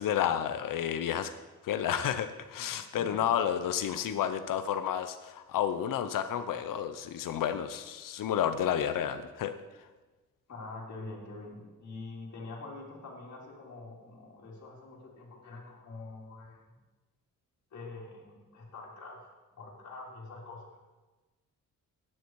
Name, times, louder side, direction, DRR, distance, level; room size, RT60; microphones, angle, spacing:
voice 1, 0.0-1.3 1.6-9.5, left 9 dB, 90° left, 9 dB, 0.8 m, -31 dB
voice 2, 10.5-16.6 17.7-20.8, left 3 dB, 55° left, -5 dB, 3.4 m, -45 dB
16.0 x 10.0 x 4.7 m, 1.2 s
wide cardioid pair, 140°, 32 cm